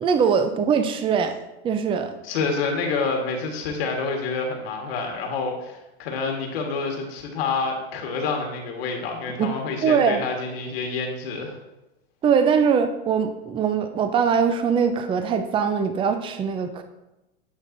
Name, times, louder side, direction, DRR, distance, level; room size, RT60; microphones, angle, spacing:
voice 1, 0.0-1.4 1.6-2.1 9.4-9.5 9.8-10.2 12.2-16.8, right 6 dB, 15° right, 8 dB, 0.5 m, -22 dB
voice 2, 2.2-11.5, left 4 dB, 65° left, 2 dB, 1.5 m, -28 dB
9.9 x 5.3 x 2.6 m, 0.96 s
hypercardioid pair, 115°, 33 cm